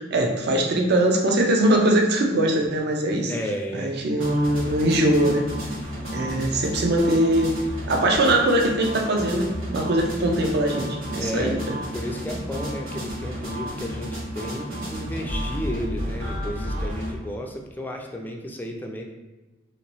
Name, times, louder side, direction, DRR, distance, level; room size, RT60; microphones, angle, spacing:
voice 1, 0.0-3.3 3.7-5.5 6.1-7.5 7.9-11.8, right 1 dB, 55° right, 2 dB, 0.5 m, -21 dB
voice 2, 3.3-4.0 11.2-11.6 11.9-19.1, equal, 10° left, 1 dB, 0.3 m, -33 dB
sound 1, 4.2-17.1, equal, 90° right, 1.5 m, -32 dB
2.9 x 2.9 x 3.0 m, 1.1 s
head